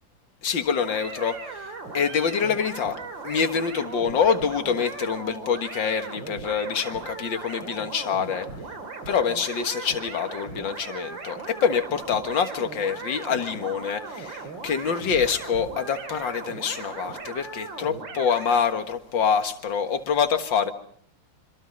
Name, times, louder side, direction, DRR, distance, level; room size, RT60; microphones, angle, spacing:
voice 1, 0.4-3.0 3.2-8.5 9.1-20.7, left 6 dB, 80° left, 9 dB, 2.3 m, -26 dB
sound 1, 0.8-18.6, right 4 dB, 75° right, 3.4 m, -38 dB
26.5 x 25.5 x 5.4 m, 0.62 s
omnidirectional pair, 2.0 m